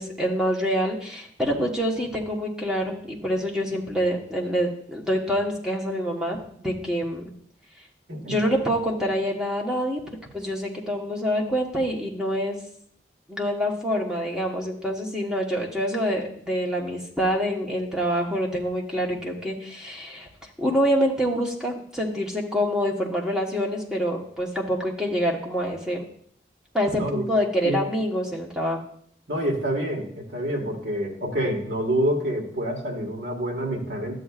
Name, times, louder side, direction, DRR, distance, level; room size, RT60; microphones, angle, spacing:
voice 1, 0.0-7.3 8.3-12.6 13.3-20.3 20.6-26.0 26.7-28.8, equal, 5° right, -1 dB, 1.1 m, -26 dB
voice 2, 26.9-27.3 27.6-27.8 29.3-34.2, right 1 dB, 75° right, -1 dB, 1.7 m, -27 dB
12.0 x 7.7 x 2.4 m, 0.62 s
head